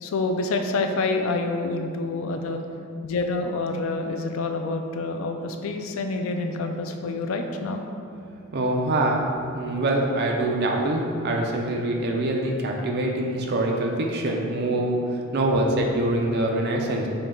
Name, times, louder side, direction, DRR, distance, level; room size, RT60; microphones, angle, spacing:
voice 1, 0.0-2.6 3.0-7.8, left 3 dB, 65° left, 5 dB, 0.3 m, -27 dB
voice 2, 8.5-9.2 9.5-15.0 15.3-17.1, right 1 dB, 45° right, 1 dB, 0.5 m, -24 dB
5.3 x 2.3 x 3.6 m, 2.6 s
head